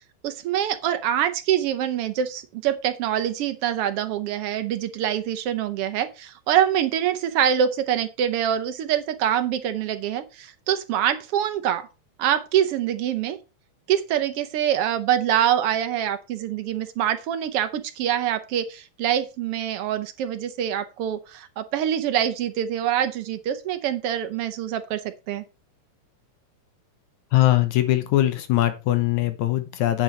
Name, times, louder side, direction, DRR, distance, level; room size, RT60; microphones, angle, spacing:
voice 1, 0.2-11.9 12.2-13.4 13.9-25.0 25.3-25.4, right 10 dB, 70° right, 1.4 m, -25 dB
voice 2, 27.3-30.0, left 14 dB, 80° left, 2.2 m, -21 dB
9.1 x 7.9 x 4.0 m
omnidirectional pair, 3.5 m